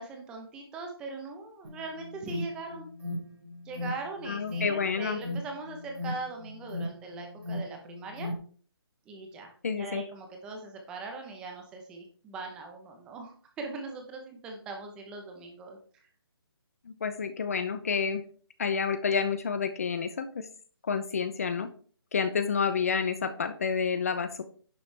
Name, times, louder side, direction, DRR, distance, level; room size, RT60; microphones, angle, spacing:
voice 1, 0.0-2.9 3.6-8.3 9.1-16.1, right 3 dB, 5° right, 3 dB, 0.8 m, -41 dB
Alarm, 1.6-8.3, left 1 dB, 80° right, 4.9 m, -38 dB
voice 2, 4.3-5.2 9.6-10.0 16.9-18.2 18.6-20.5 20.8-21.7 22.1-24.4, left 6 dB, 35° left, 11 dB, 0.7 m, -29 dB
10.5 x 7.1 x 3.4 m, 0.44 s
hypercardioid pair, 175°, 13 cm